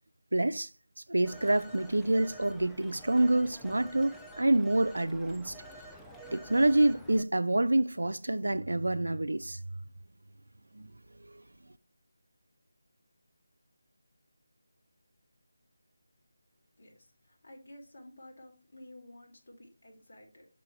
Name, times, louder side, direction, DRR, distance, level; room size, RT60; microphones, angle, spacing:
voice 1, 0.3-0.7 1.1-5.5 6.3-9.6 10.8-10.9, right 1 dB, 75° right, 0.4 m, -27 dB
Telephone, 1.2-7.2, right 1 dB, ahead, 0.4 m, -49 dB
voice 2, 16.8-20.5, left 1 dB, 50° left, 2.3 m, -52 dB
6.7 x 4.7 x 3.1 m
figure-of-eight pair, 160°, 0 cm